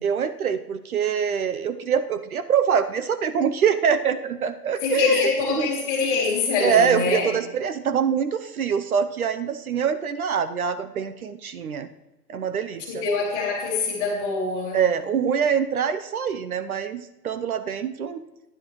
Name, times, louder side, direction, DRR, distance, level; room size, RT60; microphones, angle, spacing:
voice 1, 0.0-5.2 5.5-5.7 6.6-11.9 12.3-13.0 14.7-18.2, right 7 dB, 65° right, 11 dB, 0.8 m, -24 dB
voice 2, 4.8-7.3 12.9-14.8, left 4 dB, 15° left, -3 dB, 1.9 m, -24 dB
12.0 x 10.5 x 3.1 m, 1.0 s
hypercardioid pair, 170°, 48 cm